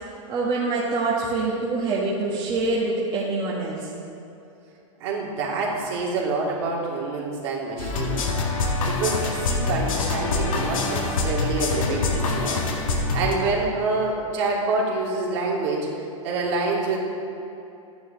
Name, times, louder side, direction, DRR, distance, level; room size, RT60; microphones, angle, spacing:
voice 1, 0.3-3.9, right 3 dB, 25° right, -6 dB, 1.6 m, -25 dB
voice 2, 5.0-15.9 16.2-17.0, right 3 dB, 55° right, -3 dB, 2.9 m, -27 dB
sound 1, 7.8-13.3, left 3 dB, 85° left, 2.0 m, -25 dB
12.5 x 10.5 x 3.9 m, 2.9 s
supercardioid pair, 140°, 17 cm